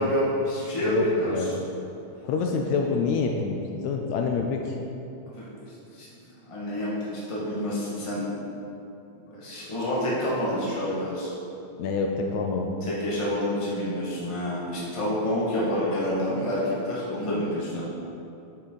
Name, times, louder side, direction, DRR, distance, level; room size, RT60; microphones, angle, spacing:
voice 1, 0.0-1.5 5.3-5.5 5.9-6.1 6.5-8.2 9.3-11.3 12.8-17.8, left 1 dB, 15° left, -7 dB, 1.4 m, -28 dB
voice 2, 0.9-1.6 2.2-3.6 3.8-4.8 11.8-12.7, left 4 dB, 80° left, 2 dB, 1.9 m, -27 dB
9.1 x 7.3 x 4.0 m, 2.8 s
omnidirectional pair, 3.4 m